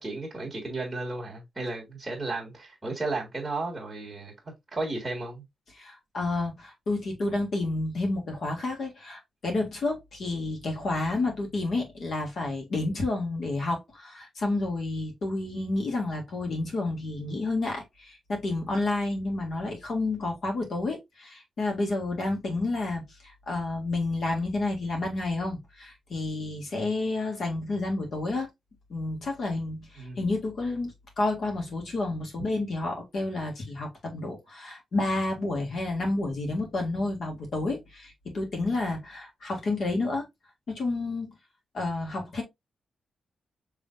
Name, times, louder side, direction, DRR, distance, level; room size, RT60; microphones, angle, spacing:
voice 1, 0.0-4.3 4.7-5.4 30.0-30.2 32.4-32.5, right 2 dB, 15° right, 1.7 m, -34 dB
voice 2, 5.7-28.5 28.9-40.3 40.7-41.3 41.7-42.4, left 2 dB, 50° left, 1.8 m, -30 dB
5.7 x 3.3 x 2.5 m
wide cardioid pair, 140°, 0 cm